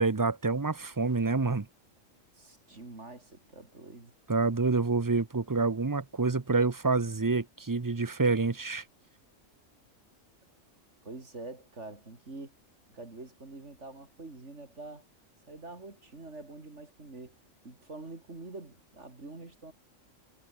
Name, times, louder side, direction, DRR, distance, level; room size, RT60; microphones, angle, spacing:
voice 1, 0.0-1.7 4.3-8.8, right 3 dB, 20° right, 0.6 m, -27 dB
voice 2, 2.3-4.1 11.0-12.5 12.9-15.1 15.5-17.4 17.6-19.7, right 2 dB, 60° right, 3.8 m, -46 dB
omnidirectional pair, 1.4 m